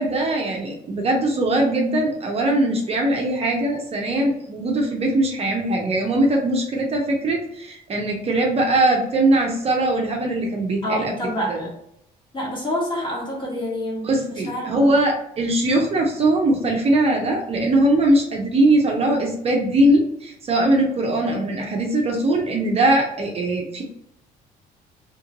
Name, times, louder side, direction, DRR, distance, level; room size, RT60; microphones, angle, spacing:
voice 1, 0.0-11.1 11.4-11.7 14.0-23.8, right 1 dB, 35° right, 0 dB, 0.6 m, -21 dB
voice 2, 10.8-11.7 12.3-14.1 14.4-14.9, equal, 30° left, -4 dB, 1.5 m, -27 dB
2.9 x 2.4 x 2.8 m, 0.75 s
cardioid pair, 110°, 17 cm